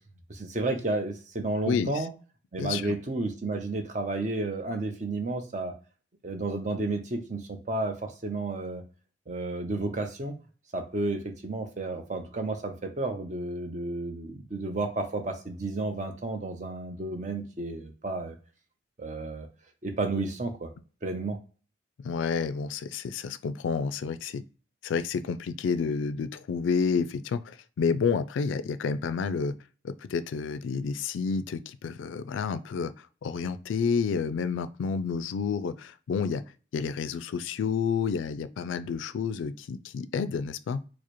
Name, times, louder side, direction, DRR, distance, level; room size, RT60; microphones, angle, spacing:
voice 1, 0.3-2.1 2.5-5.7 6.2-8.8 9.3-10.3 10.7-18.4 19.0-19.5 19.8-20.7 21.0-21.4, right 2 dB, 40° right, 0.6 m, -32 dB
voice 2, 1.6-2.0 2.6-2.9 22.0-24.4 24.8-29.6 29.8-36.4 36.7-40.8, left 5 dB, 80° left, 0.3 m, -30 dB
4.7 x 2.0 x 3.0 m
head